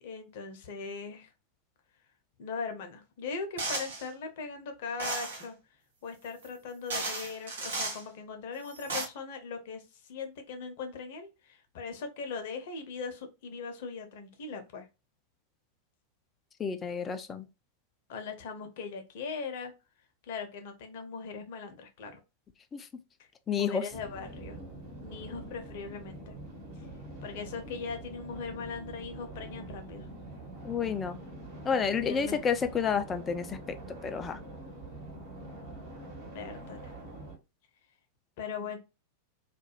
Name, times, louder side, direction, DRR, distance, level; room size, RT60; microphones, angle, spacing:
voice 1, 0.0-1.3 2.4-5.6 6.0-14.9 18.1-19.7 20.2-22.2 23.5-24.6 25.0-26.3 27.2-30.1 32.0-32.4 36.3-36.9 38.4-38.8, left 5 dB, 50° left, 0.6 m, -40 dB
sound 1, 3.6-4.1 5.0-5.5 6.4-6.5 6.9-8.0 8.7-9.1, right 3 dB, 65° right, 0.8 m, -34 dB
voice 2, 16.6-17.5 22.7-22.8 23.5-23.8 30.6-31.2 31.7-33.8 34.0-34.4, left 6 dB, 20° left, 0.3 m, -30 dB
sound 2, 23.9-37.4, right 2 dB, 50° right, 1.2 m, -45 dB
2.4 x 2.2 x 2.9 m
figure-of-eight pair, 90°, 0 cm